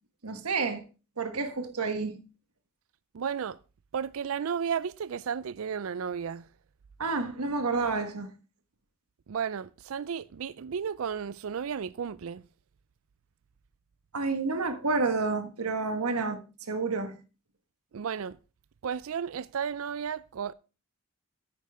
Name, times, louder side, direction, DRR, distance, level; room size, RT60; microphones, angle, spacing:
voice 1, 0.2-0.8 1.2-2.2 7.0-8.3 14.1-16.4 16.7-17.1, right 4 dB, 85° right, 1.4 m, -29 dB
voice 2, 3.1-3.6 3.9-6.4 9.3-12.4 17.9-18.4 18.8-20.5, right 7 dB, 65° right, 0.4 m, -33 dB
9.3 x 9.2 x 3.5 m
head